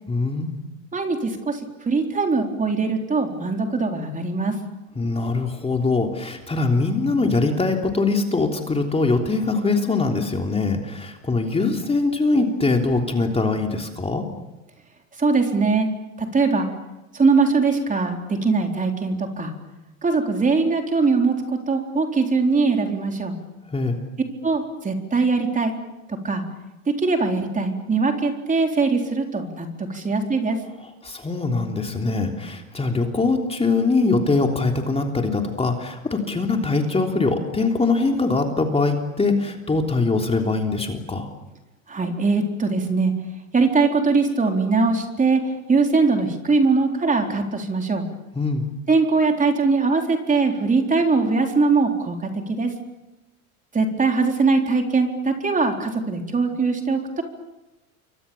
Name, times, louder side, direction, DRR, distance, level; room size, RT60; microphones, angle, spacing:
voice 1, 0.1-0.5 4.9-14.2 23.7-24.0 31.0-41.3 48.3-48.6, left 3 dB, 15° left, 3 dB, 3.4 m, -22 dB
voice 2, 0.9-1.6 1.9-4.6 15.2-15.9 16.2-16.7 17.1-19.5 20.0-21.3 21.7-23.4 24.4-25.7 26.2-26.4 26.9-30.6 41.9-43.1 43.5-48.1 48.9-52.7 53.7-57.2, right 4 dB, 20° right, 3 dB, 4.0 m, -21 dB
29.0 x 24.5 x 7.2 m, 1.0 s
hypercardioid pair, 95°, 41 cm